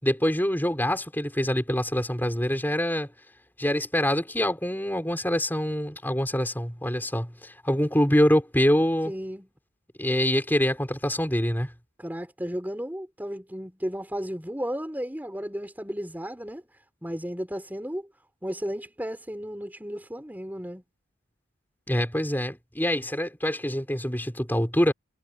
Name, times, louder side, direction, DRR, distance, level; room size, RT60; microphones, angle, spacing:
voice 1, 0.0-3.1 3.6-9.1 10.0-11.7 21.9-24.9, equal, 10° left, 5.6 m, -25 dB
voice 2, 9.1-9.5 12.0-16.6 17.0-18.1 18.4-20.8, equal, 10° right, 4.8 m, -34 dB
head